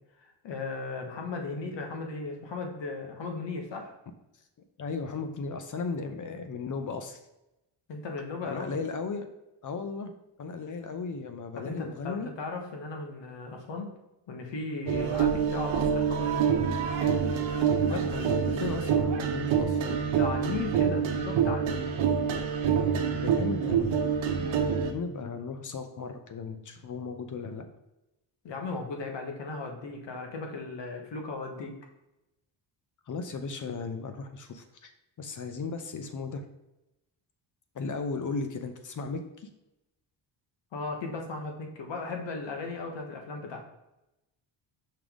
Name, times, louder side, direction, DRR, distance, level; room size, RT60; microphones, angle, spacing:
voice 1, 0.2-3.9 7.9-8.7 11.5-13.9 14.3-16.6 19.8-21.9 28.4-31.7 40.7-43.6, left 3 dB, 65° left, 3 dB, 1.5 m, -36 dB
voice 2, 4.8-7.2 8.4-9.3 9.6-10.1 10.4-12.3 17.8-20.0 23.0-24.0 24.4-27.7 33.1-34.9 35.2-36.5 37.7-39.5, left 4 dB, 40° left, 7 dB, 0.7 m, -36 dB
sound 1, 14.9-24.9, right 7 dB, 80° right, 1.0 m, -26 dB
5.7 x 5.1 x 3.7 m, 0.92 s
cardioid pair, 140°, 47 cm